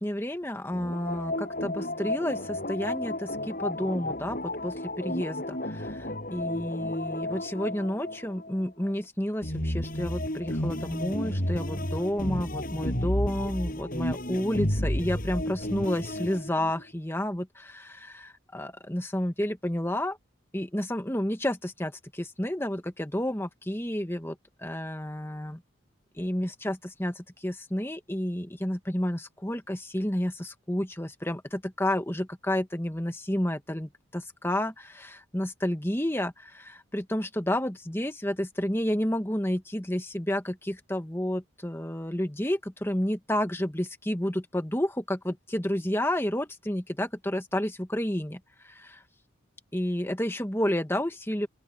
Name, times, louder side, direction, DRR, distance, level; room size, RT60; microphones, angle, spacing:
voice 1, 0.0-20.2 20.5-24.3 24.6-25.6 26.2-49.0 49.7-51.5, left 1 dB, 10° left, 1.6 m, -30 dB
sound 1, 0.7-8.9 9.4-16.8, left 1 dB, 45° left, 7.3 m, -32 dB
open air
head